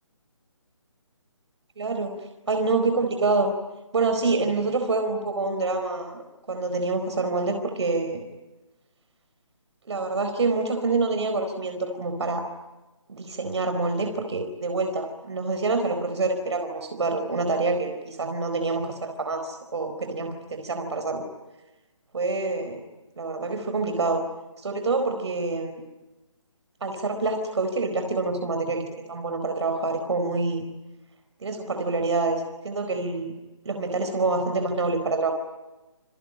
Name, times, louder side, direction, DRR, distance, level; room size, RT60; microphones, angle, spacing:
voice 1, 1.8-2.1 2.5-3.5 3.9-6.2 6.5-8.2 9.9-12.5 13.1-21.2 22.1-22.8 23.2-24.2 24.6-25.8 26.8-30.6 31.4-33.4 33.6-35.3, right 3 dB, 60° right, 6 dB, 4.4 m, -26 dB
28.5 x 22.5 x 8.7 m, 1.1 s
hypercardioid pair, 165°, 17 cm